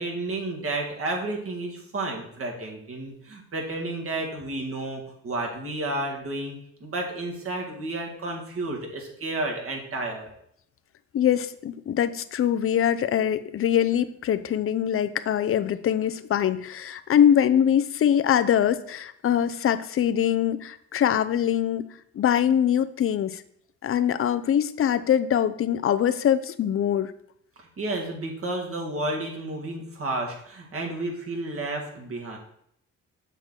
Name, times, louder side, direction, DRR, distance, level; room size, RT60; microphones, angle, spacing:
voice 1, 0.0-6.6 6.8-10.3 27.6-32.4, right 2 dB, 45° right, 0 dB, 2.2 m, -31 dB
voice 2, 11.1-21.8 22.1-23.4 23.8-27.1, left 9 dB, 45° left, 11 dB, 0.6 m, -23 dB
6.8 x 3.9 x 6.3 m, 0.72 s
cardioid pair, 90°, 30 cm